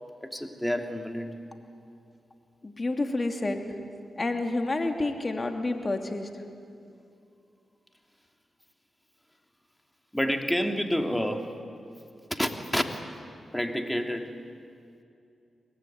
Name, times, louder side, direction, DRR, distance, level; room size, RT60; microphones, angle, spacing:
voice 1, 0.2-1.3 3.4-3.6 10.1-11.5 12.3-12.9 13.5-14.3, equal, 5° left, 4 dB, 2.8 m, -29 dB
voice 2, 2.6-3.6 4.2-6.3, left 2 dB, 35° left, 4 dB, 2.8 m, -29 dB
24.5 x 19.5 x 9.5 m, 2.5 s
supercardioid pair, 45°, 0 cm